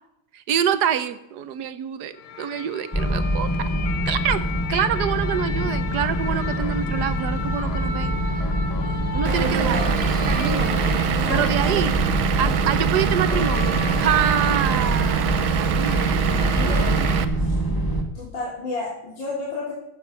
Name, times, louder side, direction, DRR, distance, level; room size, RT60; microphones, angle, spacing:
voice 1, 0.3-3.7 4.0-4.4 4.7-8.2 9.1-9.9 10.3-10.7 11.3-11.9 12.4-17.1, right 9 dB, 65° right, 13 dB, 1.2 m, -26 dB
sound 1, 2.1-17.2, left 5 dB, 85° left, 1.9 m, -35 dB
sound 2, 2.9-18.0, right 1 dB, 10° left, 1.7 m, -25 dB
voice 2, 9.2-9.9 11.2-11.9 12.4-12.6 16.5-16.9 17.4-17.6 18.1-19.7, left 2 dB, 65° left, -6 dB, 3.8 m, -31 dB
Vehicle / Engine, 9.3-17.3, right 10 dB, 85° right, 1.7 m, -25 dB
14.5 x 7.5 x 5.6 m, 0.86 s
omnidirectional pair, 2.2 m